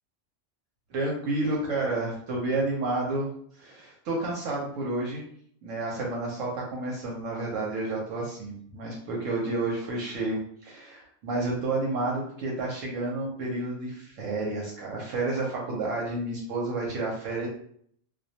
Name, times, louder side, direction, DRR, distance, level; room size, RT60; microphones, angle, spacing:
voice 1, 0.9-3.3 3.6-5.2 5.6-17.5, right 2 dB, 85° right, -3 dB, 1.0 m, -30 dB
2.2 x 2.1 x 2.7 m, 0.63 s
omnidirectional pair, 1.3 m